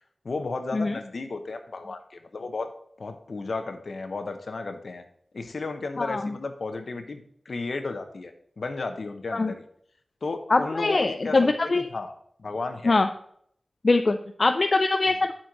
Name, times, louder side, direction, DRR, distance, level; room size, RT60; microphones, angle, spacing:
voice 1, 0.2-2.7 3.0-5.0 5.3-9.6 10.2-12.1 12.4-13.0, left 3 dB, 75° left, 7 dB, 0.9 m, -34 dB
voice 2, 6.0-6.3 9.3-9.5 10.5-11.8 12.8-13.1 13.8-15.3, left 3 dB, 55° left, 7 dB, 0.4 m, -22 dB
7.6 x 4.4 x 6.4 m, 0.66 s
wide cardioid pair, 75°, 0 cm